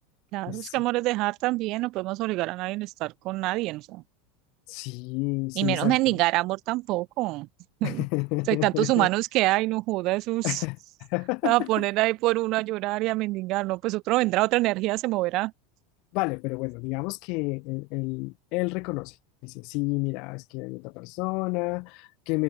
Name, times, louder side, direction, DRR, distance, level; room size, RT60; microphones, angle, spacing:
voice 1, 0.3-4.0 5.5-7.5 7.8-8.0 8.5-10.6 11.4-15.5, right 20 dB, 55° right, 4.8 m, -26 dB
voice 2, 4.7-6.2 7.8-9.1 10.4-10.8 11.1-11.7 16.1-19.1 19.4-22.4, left 28 dB, 60° left, 3.7 m, -30 dB
hypercardioid pair, 90°, 0 cm